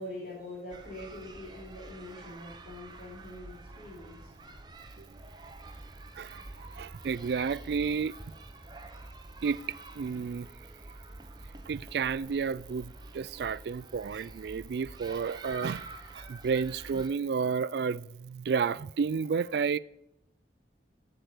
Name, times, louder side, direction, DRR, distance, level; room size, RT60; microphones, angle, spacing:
voice 1, 0.0-4.5, left 1 dB, 45° left, 3.8 m, -44 dB
sound 1, 0.7-17.1, right 2 dB, 25° right, 0.7 m, -48 dB
voice 2, 6.2-8.1 9.4-9.6 10.0-10.5 11.7-15.9 16.1-19.8, right 5 dB, 65° right, 0.3 m, -31 dB
7.9 x 7.8 x 8.2 m
head